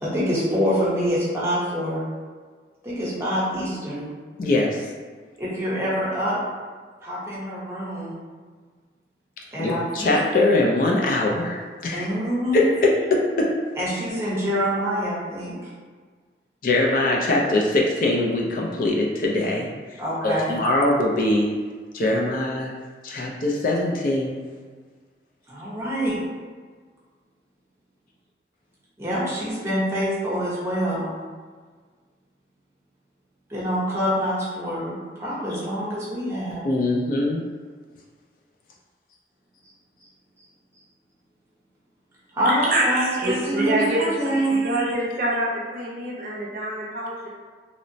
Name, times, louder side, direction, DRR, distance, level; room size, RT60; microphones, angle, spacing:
voice 1, 0.0-2.0 2.8-4.1 5.4-6.4 7.0-8.2 9.5-10.1 11.9-12.6 13.8-15.7 20.0-20.5 25.5-26.2 29.0-31.1 33.5-36.6 42.3-44.6, equal, 15° right, -8 dB, 0.8 m, -25 dB
voice 2, 4.4-4.8 9.6-12.1 12.5-13.5 16.6-21.5 21.9-22.7 23.0-24.4 36.6-37.4, left 2 dB, 50° left, -1 dB, 0.3 m, -22 dB
voice 3, 42.5-47.3, right 1 dB, 50° right, -5 dB, 0.5 m, -26 dB
3.0 x 2.0 x 2.6 m, 1.5 s
head